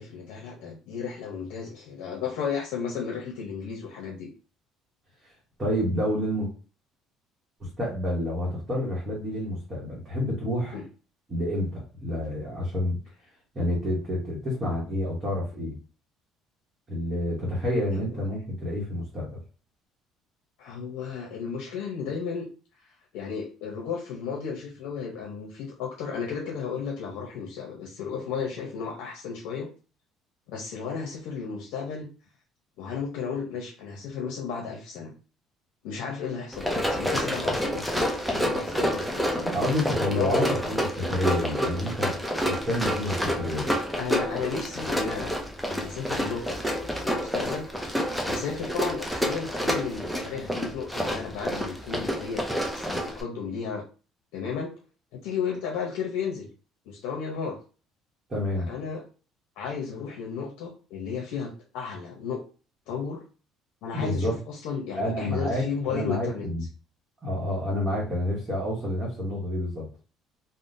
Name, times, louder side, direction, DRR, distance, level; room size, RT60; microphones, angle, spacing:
voice 1, 0.0-4.3 10.7-10.8 17.9-18.1 20.6-22.5 23.1-29.7 30.5-32.1 32.8-35.1 35.8-39.5 40.0-40.4 44.0-45.3 45.7-52.5 52.7-53.8 54.3-54.7 55.1-56.5 56.9-57.6 58.5-59.0 59.6-62.4 62.9-63.2 63.8-66.5, left 6 dB, 80° left, -1 dB, 0.6 m, -34 dB
voice 2, 5.6-6.5 7.6-10.8 11.3-13.0 13.5-15.8 16.9-19.4 39.4-43.7 58.3-58.7 63.9-64.4 64.9-66.6 67.2-69.9, left 1 dB, 20° right, -5 dB, 0.9 m, -29 dB
Run, 36.5-53.2, equal, ahead, 0.4 m, -29 dB
3.6 x 2.0 x 2.5 m, 0.36 s
cardioid pair, 160°, 0 cm